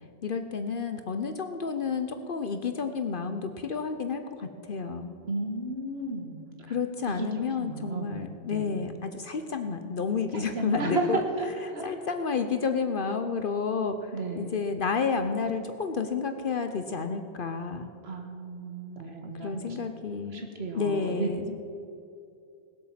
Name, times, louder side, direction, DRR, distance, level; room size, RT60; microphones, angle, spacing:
voice 1, 0.2-5.1 6.7-11.2 11.6-17.9 19.4-20.4 20.7-21.6, left 5 dB, 60° left, 8 dB, 0.9 m, -31 dB
voice 2, 5.3-6.8 7.1-7.3 7.6-8.7 10.3-11.5 11.7-11.8 14.1-14.6 18.0-19.8 20.3-21.3, right 2 dB, 90° right, 3 dB, 1.9 m, -33 dB
18.5 x 8.3 x 7.5 m, 2.6 s
omnidirectional pair, 1.0 m